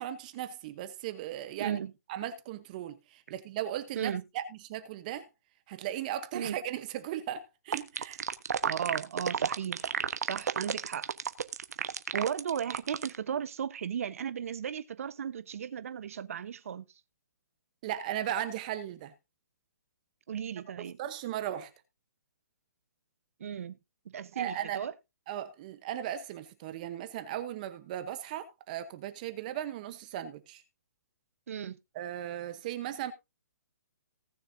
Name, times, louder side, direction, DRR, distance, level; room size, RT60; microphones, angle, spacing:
voice 1, 0.0-1.8 2.1-4.4 4.7-5.3 5.7-8.2 17.8-19.1 20.8-21.7 24.3-24.8 25.3-30.6 31.9-33.1, right 11 dB, 30° right, 0.9 m, -37 dB
voice 2, 1.6-1.9 4.0-4.2 6.3-6.6 8.6-9.9 10.2-11.1 12.1-16.9 20.3-21.0 23.4-23.8 24.0-24.9 31.5-31.8, right 8 dB, 55° right, 1.1 m, -35 dB
sound 1, 7.7-13.2, right 7 dB, 75° right, 1.2 m, -31 dB
18.5 x 6.6 x 2.7 m
hypercardioid pair, 165°, 9 cm